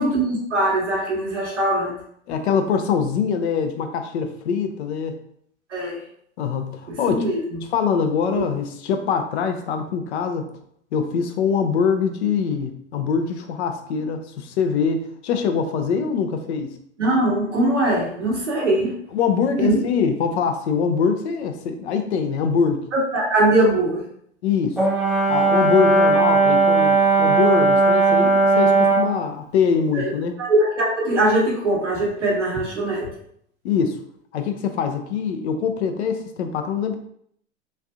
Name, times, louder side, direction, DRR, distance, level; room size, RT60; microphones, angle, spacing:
voice 1, 0.0-2.0 5.7-6.0 6.9-7.6 8.3-8.5 17.0-19.0 19.6-19.8 22.9-24.0 29.9-30.1 30.4-33.1, right 1 dB, 85° right, -3 dB, 1.1 m, -21 dB
voice 2, 2.3-5.2 6.4-7.3 7.7-10.5 10.9-16.7 19.1-22.8 24.4-24.8 25.3-30.3 33.6-34.0 34.3-37.0, left 6 dB, 70° left, 6 dB, 0.6 m, -23 dB
Brass instrument, 24.8-29.1, right 3 dB, ahead, 0.7 m, -17 dB
3.2 x 2.5 x 2.4 m, 0.67 s
figure-of-eight pair, 85°, 35 cm